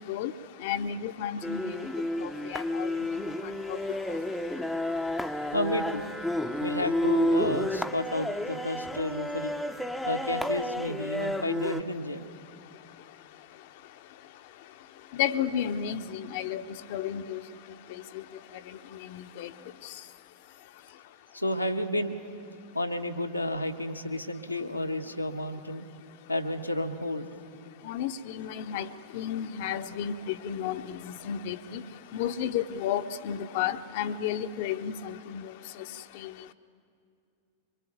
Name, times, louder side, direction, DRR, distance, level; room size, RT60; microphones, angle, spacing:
voice 1, 0.6-1.8 2.2-2.9 3.7-3.8 4.1-4.2 15.2-16.6 16.9-17.4 19.1-19.5 27.8-28.9 29.1-31.8 32.1-35.4 36.2-36.3, left 9 dB, 50° left, 9 dB, 0.8 m, -32 dB
sound 1, 1.4-11.8, left 1 dB, 5° left, 0.8 m, -31 dB
voice 2, 5.5-6.1 6.6-9.5 10.0-12.3 21.3-22.2 22.7-25.8 26.3-27.4, left 1 dB, 90° left, 3 dB, 1.3 m, -31 dB
24.0 x 22.5 x 9.2 m, 2.4 s
figure-of-eight pair, 90°, 0 cm